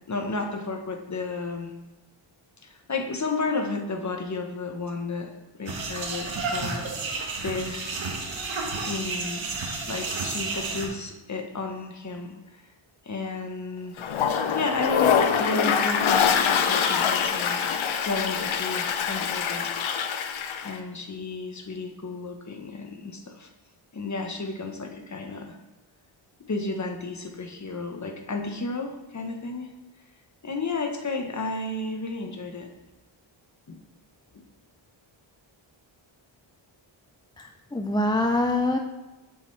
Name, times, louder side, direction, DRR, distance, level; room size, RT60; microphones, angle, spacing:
voice 1, 0.1-1.8 2.6-5.3 5.6-6.9 7.4-7.9 8.8-9.5 9.9-12.6 13.0-14.0 14.5-19.9 20.6-23.5 23.9-25.6 26.5-29.7 30.4-32.7 33.7-33.8 34.3-34.5, left 3 dB, 35° left, 3 dB, 1.1 m, -32 dB
sound 1, 5.7-10.9, right 3 dB, 65° right, 1.4 m, -31 dB
Toilet flush, 14.0-20.7, left 7 dB, 75° left, 0.7 m, -24 dB
voice 2, 37.4-38.8, left 2 dB, 10° left, 3 dB, 0.4 m, -25 dB
6.9 x 6.9 x 3.3 m, 1.0 s
cardioid pair, 85°, 49 cm